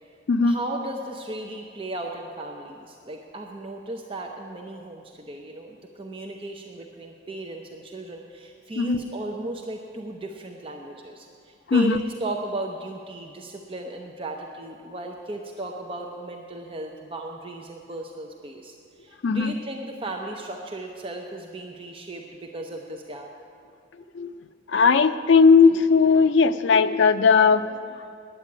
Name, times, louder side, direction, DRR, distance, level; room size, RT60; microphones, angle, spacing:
voice 1, 0.4-23.3, right 2 dB, 30° right, 2 dB, 0.6 m, -36 dB
voice 2, 11.7-12.0 19.2-19.5 24.1-24.3 24.7-27.7, left 5 dB, 70° left, 10 dB, 0.5 m, -18 dB
9.9 x 8.1 x 9.5 m, 2.5 s
head